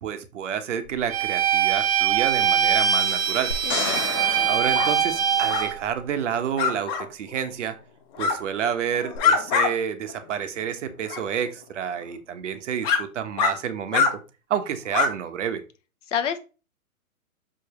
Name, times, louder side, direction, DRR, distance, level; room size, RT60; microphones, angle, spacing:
voice 1, 0.0-3.5 4.5-7.8 8.2-14.2 14.5-15.6, right 8 dB, 55° right, 8 dB, 1.2 m, -29 dB
Bowed string instrument, 1.1-5.7, right 8 dB, 25° right, 1.0 m, -22 dB
sound 1, 3.5-5.8 9.1-9.2, left 4 dB, 90° left, 1.8 m, -32 dB
voice 2, 3.6-4.3 16.1-16.4, left 8 dB, 55° left, 10 dB, 1.2 m, -29 dB
sound 2, 4.7-4.9 5.5-5.7 6.6-7.0 8.1-8.4 8.9-9.7 10.1-10.2 11.1-11.2 12.0-12.1 12.8-13.0 13.4-13.5 13.9-14.1 14.9-15.1, left 5 dB, 30° left, 1.2 m, -23 dB
6.2 x 5.0 x 3.1 m, 0.32 s
hypercardioid pair, 140°, 43 cm